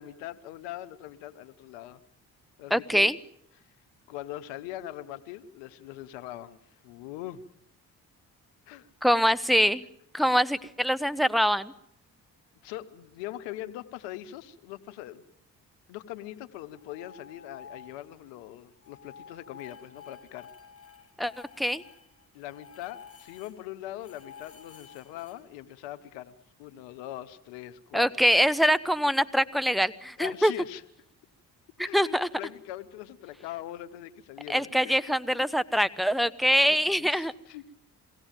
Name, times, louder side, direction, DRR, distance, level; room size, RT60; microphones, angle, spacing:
voice 1, 0.0-2.0 2.6-3.1 3.6-3.7 4.1-7.4 8.7-8.9 12.6-15.2 15.9-20.5 22.3-26.3 26.6-28.2 30.2-30.8 31.8-35.4 36.7-37.7, left 13 dB, 85° left, 12 dB, 1.0 m, -42 dB
voice 2, 2.7-3.2 9.0-9.8 10.1-11.7 21.2-21.8 27.9-30.5 31.8-32.3 34.5-37.3, equal, ahead, 16 dB, 1.1 m, -24 dB
sound 1, 16.7-18.3 18.6-23.6 24.0-25.3, left 7 dB, 30° left, 7.5 m, -51 dB
23.0 x 17.0 x 9.0 m, 0.72 s
hypercardioid pair, 45°, 43 cm